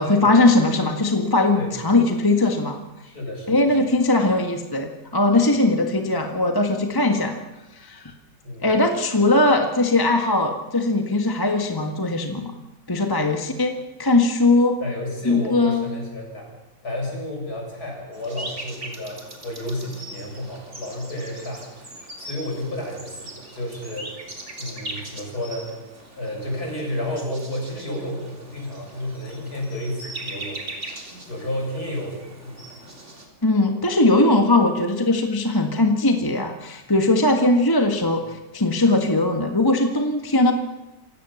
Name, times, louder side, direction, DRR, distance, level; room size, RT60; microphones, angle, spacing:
voice 1, 0.0-2.8 3.5-7.4 7.7-8.1 8.6-12.5 12.9-14.8 15.2-15.9 33.4-40.5, left 2 dB, 10° left, 4 dB, 1.6 m, -20 dB
voice 2, 1.6-1.9 3.0-3.9 8.4-8.7 14.8-16.5 16.8-24.2 24.6-25.7 26.2-30.6 31.3-32.2 32.4-32.6, left 1 dB, 55° left, 0 dB, 8.1 m, -31 dB
sound 1, 18.1-33.3, right 2 dB, 40° right, 3.8 m, -40 dB
27.5 x 17.5 x 7.3 m, 1.0 s
omnidirectional pair, 2.0 m